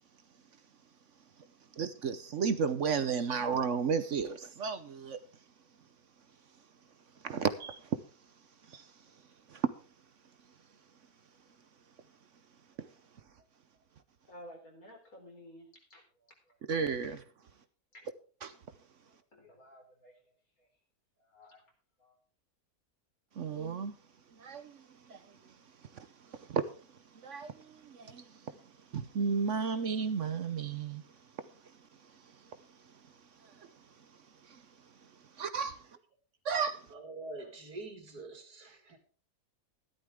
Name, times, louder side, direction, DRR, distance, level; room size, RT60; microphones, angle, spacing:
voice 1, 1.8-5.2 7.2-8.0 8.7-8.8 9.5-9.7 16.7-17.2 18.4-18.5 23.4-24.0 24.4-24.8 25.1-25.2 26.3-26.7 27.2-28.2 28.9-31.0 34.5-34.6 35.4-35.8 36.4-36.8, right 6 dB, 60° right, 1.1 m, -33 dB
voice 2, 14.3-16.6 17.0-17.1 17.9-18.1 19.1-20.1 20.6-20.7 21.2-21.6 22.0-22.2, equal, 70° left, 4.6 m, -54 dB
voice 3, 36.9-39.0, right 2 dB, 85° right, 2.8 m, -45 dB
14.0 x 12.0 x 3.7 m
omnidirectional pair, 1.6 m